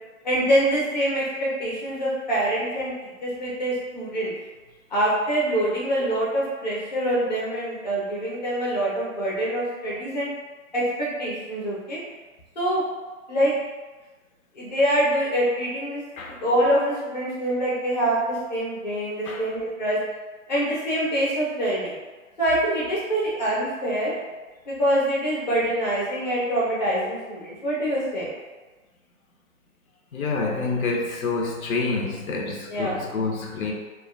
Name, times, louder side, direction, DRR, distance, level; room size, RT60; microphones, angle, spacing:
voice 1, 0.2-4.3 4.9-10.3 10.7-12.0 12.6-12.8 13.3-13.5 14.6-16.0 16.4-20.0 20.5-22.0 22.4-24.1 24.7-28.3 32.7-33.0, right 1 dB, 35° left, -7 dB, 0.5 m, -25 dB
voice 2, 30.1-33.7, left 3 dB, 85° left, 0 dB, 0.6 m, -27 dB
2.5 x 2.1 x 2.4 m, 1.3 s
hypercardioid pair, 170°, 41 cm